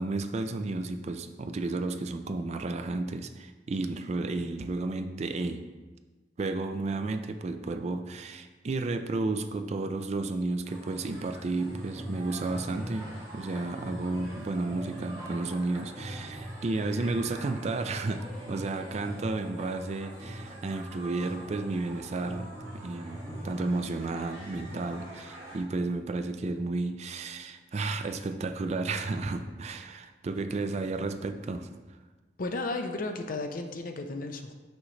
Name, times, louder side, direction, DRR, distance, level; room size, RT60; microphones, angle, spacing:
voice 1, 0.0-5.6 6.4-22.5 22.7-31.7, right 3 dB, 40° right, 8 dB, 0.4 m, -32 dB
sound 1, 10.7-25.6, equal, 20° right, 1.8 m, -42 dB
voice 2, 32.4-34.5, left 2 dB, 50° left, 6 dB, 0.6 m, -34 dB
6.2 x 6.1 x 3.2 m, 1.2 s
head